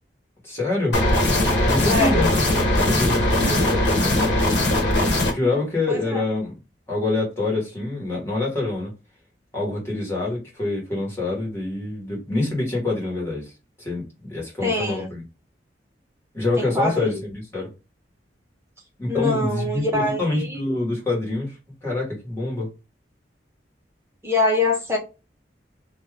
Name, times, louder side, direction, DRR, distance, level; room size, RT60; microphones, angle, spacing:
voice 1, 0.4-1.0 1.6-2.3 2.7-4.4 4.9-6.5 6.9-8.9 9.5-13.5 13.8-15.2 16.3-17.7 19.0-21.6 21.8-22.7, left 2 dB, 15° left, 1.4 m, -26 dB
sound 1, 0.9-5.3, left 1 dB, 70° left, 1.1 m, -20 dB
voice 2, 1.9-2.3 3.4-3.8 5.9-6.2 14.6-15.1 16.6-17.2 19.1-20.6 24.2-25.0, left 2 dB, 15° right, 0.7 m, -24 dB
2.7 x 2.4 x 3.3 m
head